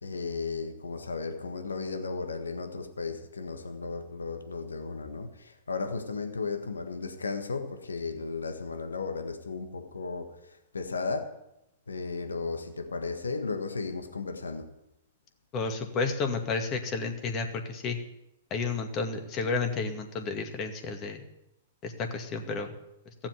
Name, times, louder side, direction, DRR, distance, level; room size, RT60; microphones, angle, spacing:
voice 1, 0.0-11.3 11.9-14.6, left 4 dB, 90° left, 7 dB, 1.5 m, -35 dB
voice 2, 15.5-18.0 18.5-21.2 21.8-22.7, left 4 dB, 35° left, 5 dB, 2.3 m, -31 dB
15.5 x 7.4 x 9.7 m, 0.89 s
hypercardioid pair, 115°, 0 cm